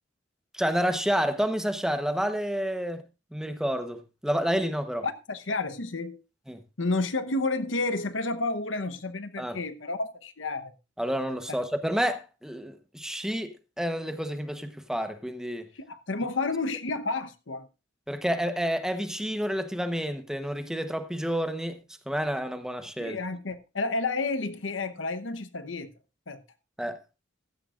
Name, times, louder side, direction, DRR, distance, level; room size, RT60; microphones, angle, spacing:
voice 1, 0.5-3.0 3.3-5.0 6.5-6.6 9.4-9.6 11.0-15.7 18.1-21.8 22.1-23.2 26.8-27.0, equal, 5° right, 1.0 m, -29 dB
voice 2, 5.0-6.2 6.8-10.7 15.8-17.7 23.0-25.9 26.3-26.4, left 3 dB, 85° left, 1.0 m, -30 dB
15.5 x 12.5 x 2.5 m
head